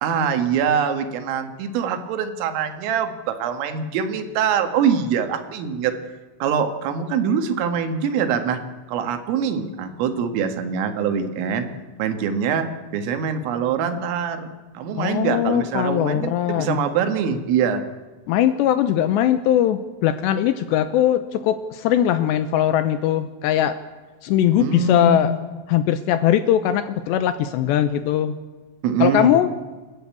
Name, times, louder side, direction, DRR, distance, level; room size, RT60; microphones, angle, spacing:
voice 1, 0.0-5.9 6.4-8.6 8.9-11.7 12.0-14.5 14.8-17.8 24.6-25.3 28.8-29.3, right 7 dB, 90° right, 7 dB, 4.3 m, -23 dB
voice 2, 15.0-16.8 18.3-23.8 24.2-25.4 25.7-28.3 29.0-29.5, left 11 dB, 80° left, 11 dB, 2.7 m, -20 dB
28.5 x 12.5 x 8.5 m, 1.3 s
omnidirectional pair, 5.7 m